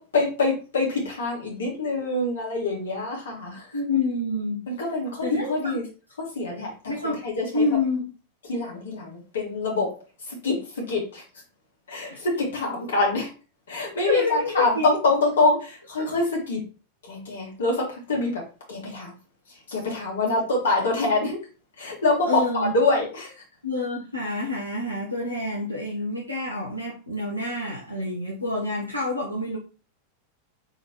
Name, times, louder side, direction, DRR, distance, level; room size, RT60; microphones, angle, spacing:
voice 1, 0.0-3.7 4.7-5.8 6.2-7.7 8.4-9.9 10.3-11.2 11.9-13.3 13.7-16.7 17.0-19.1 19.7-21.4 21.8-23.3 25.2-25.3, left 2 dB, 65° left, -1 dB, 1.9 m, -25 dB
voice 2, 3.7-4.6 5.2-5.8 6.9-7.2 7.5-8.1 12.1-12.2 14.0-14.9 16.0-16.1 22.3-22.7 23.6-29.6, left 2 dB, 90° left, -4 dB, 0.9 m, -27 dB
4.0 x 3.8 x 3.0 m, 0.34 s
figure-of-eight pair, 90°, 0 cm